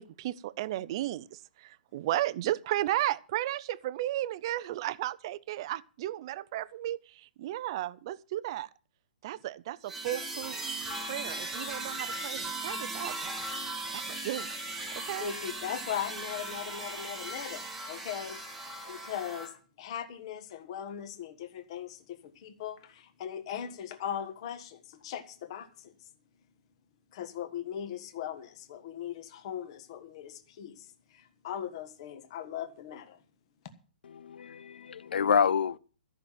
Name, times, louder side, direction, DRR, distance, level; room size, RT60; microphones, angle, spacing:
voice 1, 0.0-8.7 9.2-10.6 11.0-13.4 13.9-14.6 15.0-15.3, right 14 dB, 30° right, 0.5 m, -34 dB
sound 1, 9.9-19.5, right 2 dB, 5° right, 1.4 m, -38 dB
voice 2, 15.2-19.5 19.8-25.9 27.1-33.2, left 9 dB, 35° left, 1.4 m, -39 dB
voice 3, 34.0-35.8, left 7 dB, 80° left, 0.7 m, -28 dB
13.5 x 5.9 x 9.0 m
hypercardioid pair, 170°, 5 cm